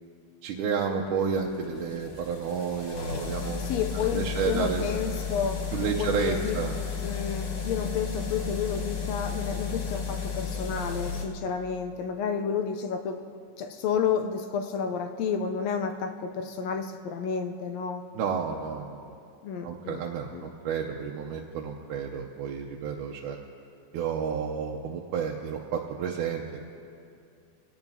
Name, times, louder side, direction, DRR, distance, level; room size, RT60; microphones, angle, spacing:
voice 1, 0.4-3.7 3.9-5.0 5.7-6.8 18.1-19.1 19.6-23.4 23.9-26.7, right 6 dB, 85° right, 0 dB, 2.2 m, -31 dB
sound 1, 0.9-11.2, left 6 dB, 60° left, 2.0 m, -33 dB
voice 2, 3.3-5.7 6.0-6.6 7.0-13.2 13.6-18.0 19.4-20.0 20.3-20.5, left 6 dB, 80° left, 6 dB, 1.6 m, -31 dB
22.5 x 17.5 x 2.8 m, 2.4 s
omnidirectional pair, 3.6 m